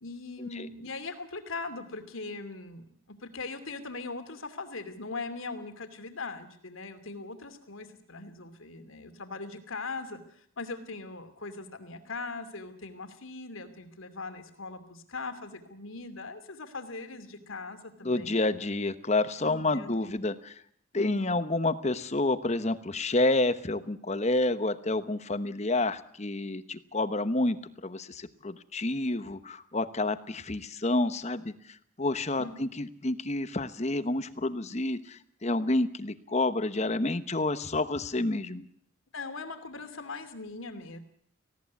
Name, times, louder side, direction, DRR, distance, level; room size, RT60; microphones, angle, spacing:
voice 1, 0.0-18.4 19.4-20.1 20.9-21.4 32.4-32.5 39.1-41.0, left 3 dB, 80° left, 8 dB, 2.7 m, -40 dB
voice 2, 18.0-20.5 20.9-31.5 32.0-38.7, left 2 dB, 35° left, 12 dB, 1.0 m, -29 dB
19.0 x 16.5 x 9.4 m, 0.63 s
head